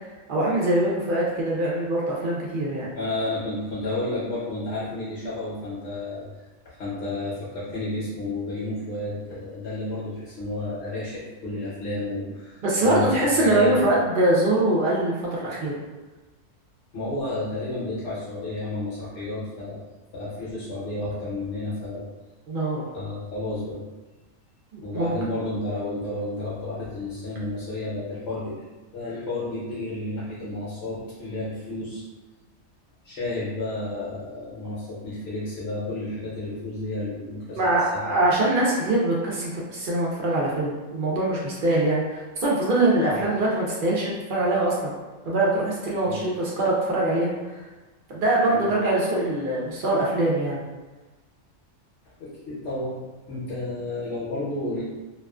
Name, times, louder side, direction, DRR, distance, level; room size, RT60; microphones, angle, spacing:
voice 1, 0.3-2.9 12.6-15.8 22.5-22.8 24.9-25.1 37.6-44.9 45.3-47.3 48.1-50.6, right 1 dB, 65° right, -4 dB, 0.5 m, -23 dB
voice 2, 3.0-6.3 6.6-13.9 16.9-19.8 20.1-22.1 22.9-23.8 24.8-28.6 28.9-32.0 33.0-38.3 43.1-43.2 46.0-46.2 48.5-48.8 52.2-52.9 53.3-54.8, left 2 dB, 65° left, -8 dB, 0.9 m, -31 dB
2.4 x 2.3 x 2.3 m, 1.2 s
omnidirectional pair, 1.3 m